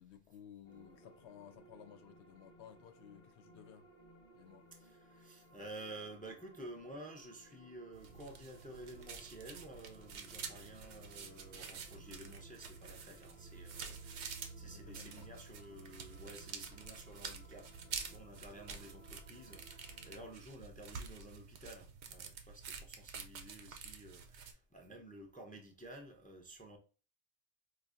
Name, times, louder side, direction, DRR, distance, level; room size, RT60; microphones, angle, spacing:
voice 1, 0.0-3.9 4.3-4.7 14.7-15.3, left 9 dB, 75° left, 0.9 m, -56 dB
sound 1, 0.6-20.3, right 1 dB, 35° left, 0.9 m, -62 dB
voice 2, 4.7-26.8, right 1 dB, 10° left, 0.4 m, -52 dB
sound 2, 7.9-24.5, right 6 dB, 80° right, 0.9 m, -48 dB
4.7 x 2.6 x 2.5 m
omnidirectional pair, 1.2 m